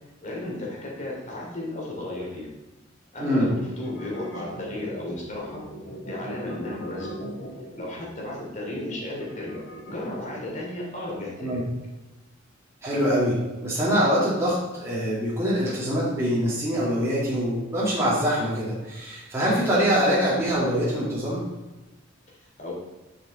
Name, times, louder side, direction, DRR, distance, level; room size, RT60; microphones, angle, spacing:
voice 1, 0.2-2.5 3.1-5.6 6.0-7.1 7.8-11.6 22.4-22.7, left 1 dB, 40° left, -3 dB, 2.9 m, -34 dB
voice 2, 3.2-3.5 11.4-11.6 12.8-21.4, equal, 15° right, -8 dB, 2.2 m, -24 dB
sound 1, 3.8-10.6, equal, 75° left, 3.4 m, -40 dB
9.5 x 6.9 x 4.1 m, 1.1 s
head